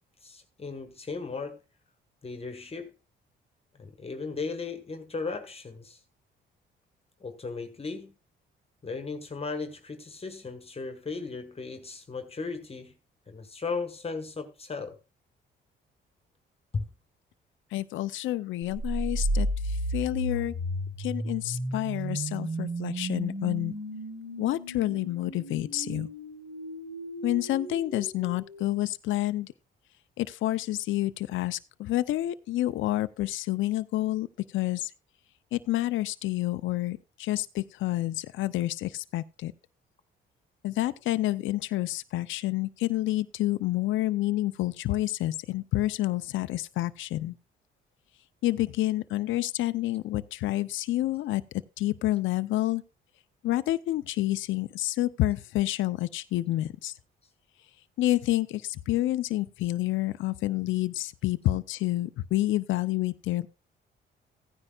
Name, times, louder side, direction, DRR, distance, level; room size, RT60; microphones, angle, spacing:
voice 1, 0.2-1.6 2.2-3.0 3.7-6.0 7.2-8.1 8.8-12.9 13.3-15.0 16.7-16.8, left 4 dB, 30° left, 1.3 m, -36 dB
voice 2, 17.7-20.5 21.0-23.7 24.4-26.1 27.2-29.5 30.2-34.3 34.5-34.9 35.5-39.5 40.6-47.4 48.4-51.4 51.8-52.8 53.4-56.9 58.0-63.5, left 15 dB, 75° left, 0.5 m, -29 dB
sound 1, 18.7-28.7, right 1 dB, 70° right, 5.3 m, -34 dB
15.5 x 9.8 x 2.3 m
cardioid pair, 90°, 20 cm